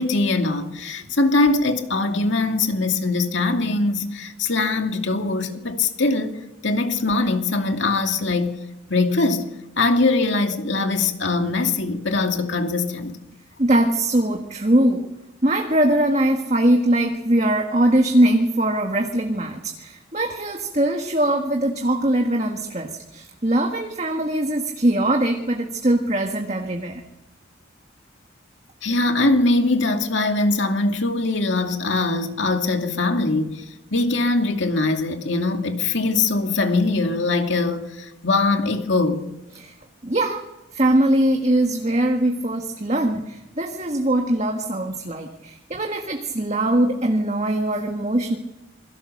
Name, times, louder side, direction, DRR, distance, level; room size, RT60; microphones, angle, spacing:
voice 1, 0.0-6.3 6.6-8.6 8.9-9.5 9.8-13.2 28.8-33.6 33.9-39.2, left 3 dB, 65° left, 2.4 m, -22 dB
voice 2, 13.6-15.1 15.4-27.0 39.6-39.7 40.0-48.4, right 1 dB, 35° right, 1.7 m, -21 dB
27.5 x 22.5 x 6.6 m
head